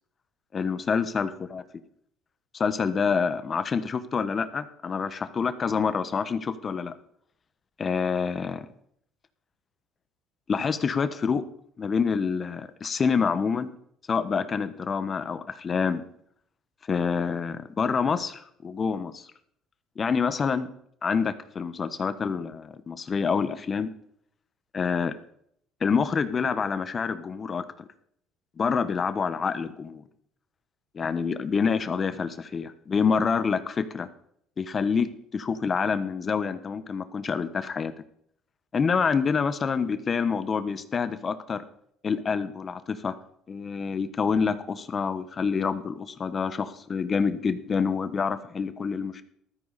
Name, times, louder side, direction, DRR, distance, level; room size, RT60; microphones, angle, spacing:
voice 1, 0.5-1.6 2.5-6.9 7.8-8.7 10.5-11.4 11.8-13.7 14.1-16.0 16.9-19.3 20.0-20.7 21.0-23.9 24.7-25.1 25.8-27.9 28.6-30.0 30.9-34.1 34.6-37.9 38.7-41.6 42.0-43.1 43.5-49.2, left 5 dB, 35° left, 11 dB, 1.1 m, -27 dB
15.0 x 13.0 x 4.2 m, 0.67 s
supercardioid pair, 100°, 0 cm